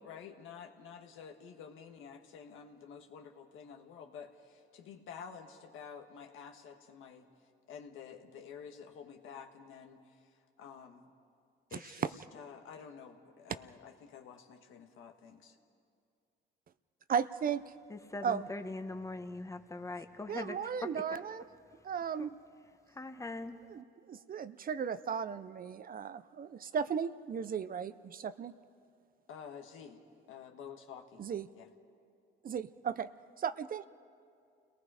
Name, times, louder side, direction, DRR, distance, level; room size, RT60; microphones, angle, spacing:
voice 1, 0.0-7.3 7.7-10.3 10.6-11.0 11.7-12.1 12.3-15.6 29.3-30.0 30.3-31.2 31.5-31.7, left 7 dB, 85° left, 4 dB, 1.6 m, -50 dB
voice 2, 17.1-17.6 18.2-18.5 20.3-21.4 21.8-22.3 23.7-28.5 31.2-31.5 32.5-33.1 33.4-33.8, right 7 dB, 45° right, 13 dB, 0.6 m, -35 dB
voice 3, 17.9-20.9 22.2-22.3 22.9-23.6, left 2 dB, 15° left, 7 dB, 1.2 m, -41 dB
29.0 x 18.5 x 5.0 m, 2.3 s
cardioid pair, 90°, 20 cm